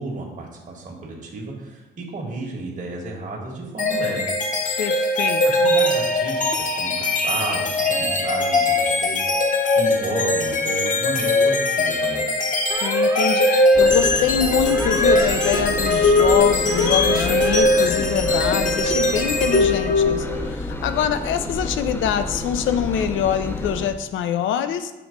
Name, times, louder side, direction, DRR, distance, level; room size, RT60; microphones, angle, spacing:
voice 1, 0.0-4.2 5.6-9.2 9.5-12.3, right 2 dB, 40° right, -2 dB, 1.4 m, -32 dB
sound 1, 3.8-20.4, left 2 dB, 40° left, 0.8 m, -20 dB
voice 2, 4.8-5.7 12.8-24.9, left 9 dB, 75° left, 10 dB, 0.5 m, -24 dB
sound 2, 12.7-13.6 14.7-15.6 16.7-17.6, right 2 dB, 15° right, 0.8 m, -31 dB
Engine, 13.7-23.9, left 1 dB, 10° left, 0.6 m, -30 dB
7.0 x 3.0 x 5.0 m, 1.1 s
cardioid pair, 90°, 20 cm